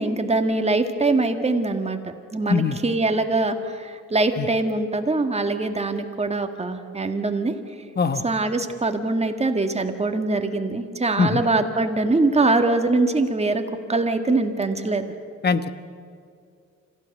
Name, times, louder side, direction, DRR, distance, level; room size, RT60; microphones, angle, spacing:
voice 1, 0.0-7.5 8.2-13.6 13.9-15.1, right 2 dB, 20° right, 6 dB, 1.9 m, -23 dB
voice 2, 2.5-2.8 4.4-4.5 8.0-8.2 11.2-11.4 15.4-15.7, left 5 dB, 35° left, 12 dB, 1.1 m, -21 dB
26.5 x 15.5 x 6.6 m, 2.3 s
cardioid pair, 90°, 30 cm